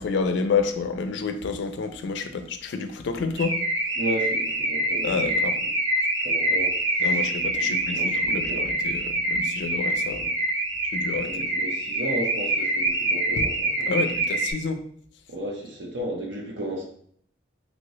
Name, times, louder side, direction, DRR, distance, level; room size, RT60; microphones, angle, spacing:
voice 1, 0.0-3.6 5.0-5.6 7.0-10.3 10.9-11.5 13.4-13.5 13.9-14.8, left 5 dB, 75° left, 8 dB, 0.3 m, -29 dB
Car / Alarm, 3.4-14.5, right 1 dB, 20° right, 0.6 m, -25 dB
voice 2, 4.0-5.3 6.2-7.0 7.6-8.7 11.2-13.5 15.3-16.8, right 1 dB, 80° right, -1 dB, 0.8 m, -33 dB
2.8 x 2.7 x 3.0 m, 0.62 s
head